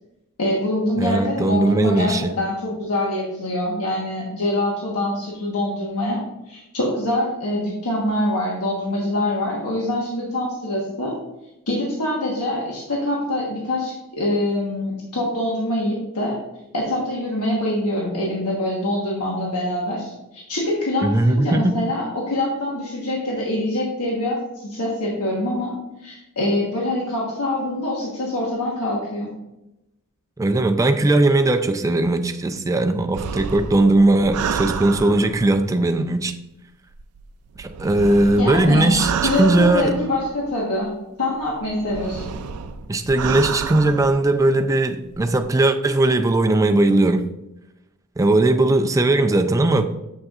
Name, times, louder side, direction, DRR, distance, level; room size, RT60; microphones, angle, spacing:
voice 1, 0.4-11.1 11.7-16.4 16.7-25.7 26.0-29.3 38.4-38.9 39.2-40.9 41.2-42.2, left 1 dB, 75° left, -3 dB, 1.3 m, -24 dB
voice 2, 1.0-2.3 21.0-21.8 30.4-36.4 37.6-39.1 39.4-40.0 42.9-47.2 48.2-49.8, right 2 dB, 15° right, 6 dB, 0.4 m, -18 dB
sound 1, 33.1-35.7 36.9-40.6 41.4-44.4 45.1-45.4, right 6 dB, 85° right, 0.4 m, -30 dB
7.2 x 6.3 x 2.4 m, 0.93 s
head